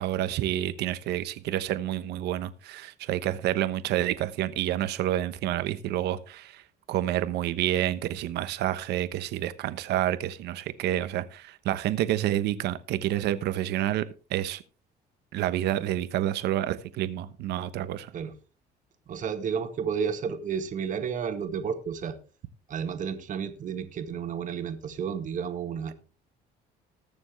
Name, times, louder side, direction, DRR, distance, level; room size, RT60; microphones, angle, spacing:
voice 1, 0.0-6.6 6.9-14.0 14.3-14.6 15.3-18.1, right 12 dB, 80° right, 1.1 m, -29 dB
voice 2, 19.1-22.1 22.7-25.9, right 7 dB, 50° right, 1.8 m, -31 dB
20.5 x 7.1 x 3.3 m
cardioid pair, 110°, 17 cm